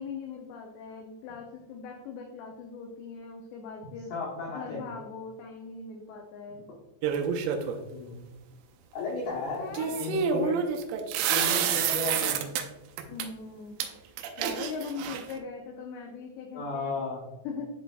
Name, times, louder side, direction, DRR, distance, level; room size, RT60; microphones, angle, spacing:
voice 1, 0.0-4.1 4.5-6.7 9.6-10.1 13.1-13.8 14.4-16.9 17.4-17.7, left 5 dB, 90° left, 2 dB, 2.4 m, -40 dB
voice 2, 4.1-4.8 7.6-8.2 8.9-9.7 10.0-10.6 11.3-12.5 16.5-17.3, left 3 dB, 70° left, -5 dB, 2.5 m, -34 dB
sound 1, 7.0-7.8 9.8-12.6 13.0-13.3 13.8-13.9 14.2-15.4, right 8 dB, 90° right, 3.1 m, -28 dB
11.0 x 4.0 x 2.3 m, 1.1 s
omnidirectional pair, 5.6 m